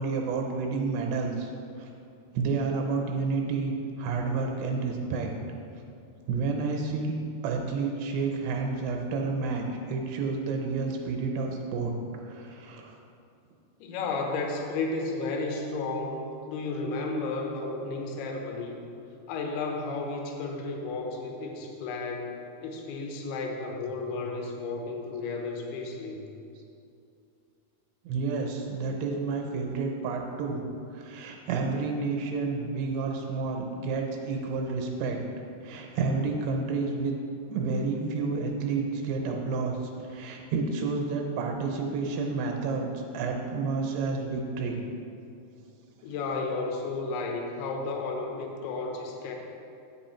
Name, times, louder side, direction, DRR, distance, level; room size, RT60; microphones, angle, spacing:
voice 1, 0.0-1.5 1.8-1.9 2.3-5.3 6.3-7.1 7.4-11.9 12.3-13.0 28.1-30.6 30.9-35.2 35.6-37.1 37.5-39.8 40.1-44.8, right 4 dB, 80° right, 2 dB, 2.8 m, -30 dB
voice 2, 13.8-18.7 19.3-22.3 22.6-26.2 46.0-49.3, left 3 dB, 75° left, 2 dB, 2.8 m, -33 dB
8.7 x 5.9 x 4.3 m, 2.6 s
omnidirectional pair, 4.8 m